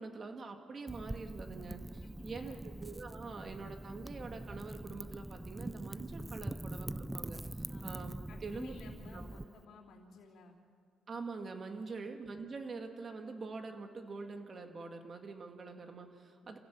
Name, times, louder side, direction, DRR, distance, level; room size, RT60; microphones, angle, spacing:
voice 1, 0.0-8.7 9.1-9.3 11.1-16.6, right 4 dB, 40° right, 5 dB, 2.3 m, -45 dB
Wind / Fire, 0.9-9.4, right 1 dB, 10° right, 0.5 m, -44 dB
voice 2, 2.0-2.7 7.7-7.8 8.3-10.5 11.8-12.0, left 4 dB, 75° left, -6 dB, 3.1 m, -54 dB
27.5 x 16.0 x 7.2 m, 2.3 s
cardioid pair, 90°, 0 cm